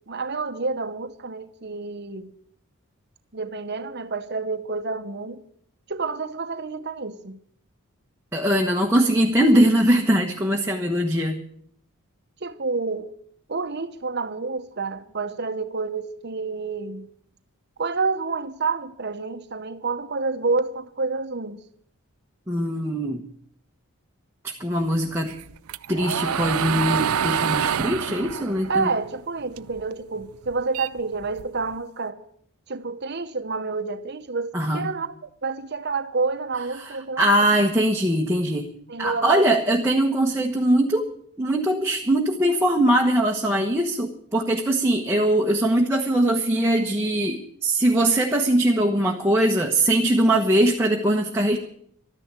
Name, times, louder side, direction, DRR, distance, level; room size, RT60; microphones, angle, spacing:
voice 1, 0.1-2.3 3.3-5.4 5.9-7.4 12.4-13.2 13.5-17.1 17.8-21.6 28.7-32.2 32.7-37.6 38.9-39.5, right 4 dB, 50° right, 0.9 m, -29 dB
voice 2, 8.3-11.4 22.5-23.2 24.4-25.4 25.9-28.9 34.5-34.9 36.8-38.7 39.0-41.1 41.4-51.6, right 1 dB, 10° right, 1.1 m, -21 dB
sound 1, 25.3-29.8 30.2-31.7, right 7 dB, 75° right, 0.5 m, -27 dB
12.5 x 10.5 x 8.8 m
head